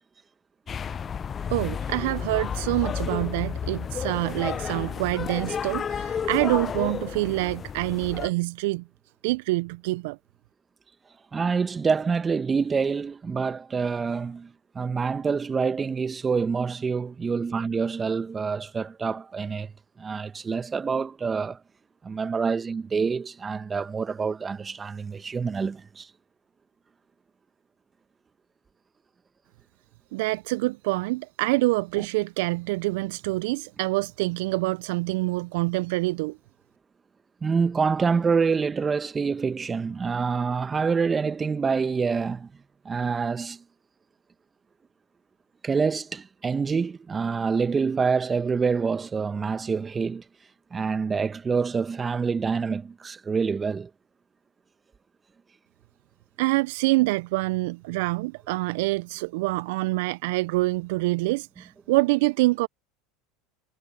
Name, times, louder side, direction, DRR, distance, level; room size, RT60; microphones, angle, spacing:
sound 1, 0.7-8.3, left 7 dB, 30° left, 0.3 m, -31 dB
voice 1, 1.5-8.8 9.2-10.2 30.1-36.4 56.4-62.7, right 21 dB, 65° right, 0.7 m, -26 dB
voice 2, 11.3-14.5 14.7-19.7 20.0-21.6 22.0-26.1 32.0-32.1 37.4-42.5 42.8-43.6 45.6-50.2 50.7-53.9, right 5 dB, 25° right, 1.5 m, -26 dB
hypercardioid pair, 80°, 0 cm